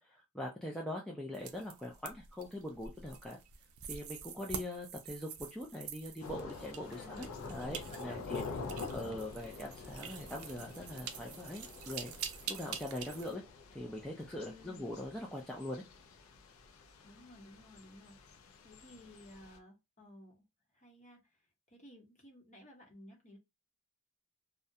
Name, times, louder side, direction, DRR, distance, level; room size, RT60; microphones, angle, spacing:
voice 1, 0.0-3.4 3.9-8.4 8.9-12.1 12.5-13.4 13.7-15.8, left 1 dB, 5° left, 0.3 m, -42 dB
Small rattling sounds - Christmas ornaments, 1.3-13.3, right 8 dB, 80° right, 0.4 m, -47 dB
Thunder / Rain, 6.2-19.6, left 4 dB, 75° left, 0.5 m, -47 dB
voice 2, 6.9-7.3 7.6-9.2 14.4-14.9 17.0-18.2 18.6-20.4 20.7-21.4 21.7-23.4, left 1 dB, 35° left, 0.8 m, -56 dB
2.3 x 2.1 x 2.6 m
head